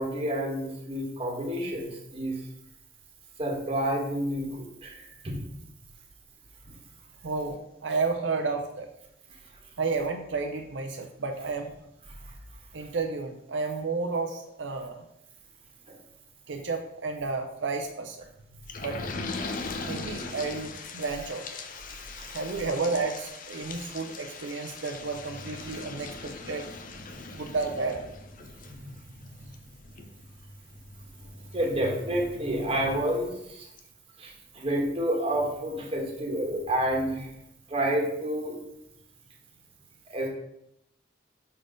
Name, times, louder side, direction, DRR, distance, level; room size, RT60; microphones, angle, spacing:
voice 1, 0.0-2.4 3.4-5.0 5.2-5.4 12.2-12.3 15.9-16.0 21.9-22.4 23.6-23.8 28.6-28.9 29.2-29.3 31.5-33.6 34.2-37.3 37.7-38.5 40.1-40.3, right 1 dB, 30° right, -1 dB, 1.5 m, -29 dB
voice 2, 7.2-8.9 9.8-11.7 12.7-15.0 16.5-18.3 18.8-19.3 19.6-21.4 22.3-26.7 27.3-28.0, right 4 dB, 80° right, 3 dB, 0.6 m, -32 dB
sound 1, 18.7-33.0 33.4-33.5 33.8-33.9, left 3 dB, 45° left, 0.7 m, -40 dB
6.4 x 4.2 x 5.0 m, 0.81 s
head